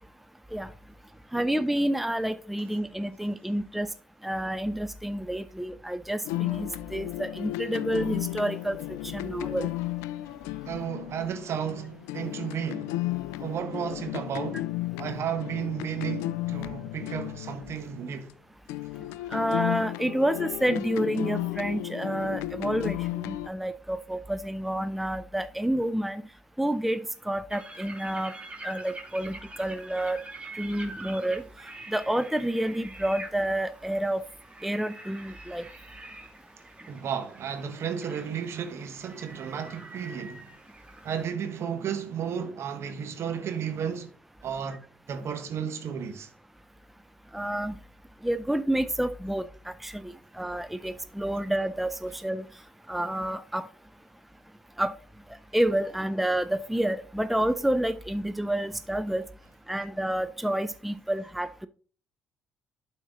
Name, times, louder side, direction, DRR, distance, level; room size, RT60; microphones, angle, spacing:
voice 1, 1.3-3.9 4.2-8.8 9.0-9.7 19.3-26.2 26.6-27.0 27.3-28.3 28.6-30.2 30.5-31.4 31.9-34.2 34.6-35.6 47.3-47.8 48.2-52.4 52.9-53.7 54.8-54.9 55.5-59.2 59.7-61.7, right 1 dB, 5° right, 0.5 m, -29 dB
sound 1, 6.2-18.3 18.7-23.5, left 16 dB, 70° left, 0.3 m, -34 dB
voice 2, 10.7-12.9 13.4-14.7 15.0-18.3 36.9-40.5 41.0-44.1 44.4-44.8 45.1-46.3, right 8 dB, 55° right, 1.4 m, -33 dB
sound 2, 27.5-41.3, right 2 dB, 20° right, 2.3 m, -45 dB
11.5 x 4.4 x 3.9 m
figure-of-eight pair, 45°, 5 cm